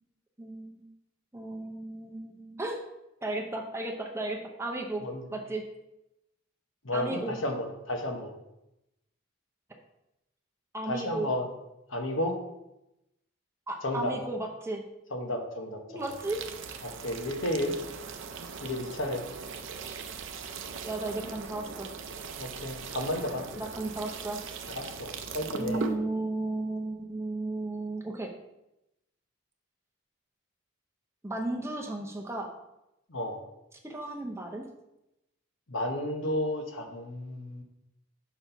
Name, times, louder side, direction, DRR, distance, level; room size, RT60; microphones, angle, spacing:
voice 1, 0.4-0.9 1.3-2.8 3.2-5.0 5.3-5.6 6.9-7.3 10.7-11.3 13.7-14.8 15.9-16.4 16.7-16.8 19.9-20.0 20.8-21.9 23.6-24.4 25.6-28.3 31.2-32.5 33.8-34.6, right 2 dB, 15° right, 1 dB, 0.6 m, -34 dB
voice 2, 6.8-8.3 10.9-11.5 11.9-12.3 13.8-14.2 15.1-16.0 16.8-17.7 18.6-19.2 22.4-23.6 24.8-25.8 33.1-33.4 35.7-37.6, left 1 dB, 65° left, 3 dB, 1.0 m, -32 dB
sound 1, 16.0-26.0, right 5 dB, 60° right, 0.6 m, -40 dB
5.9 x 4.2 x 5.5 m, 0.90 s
head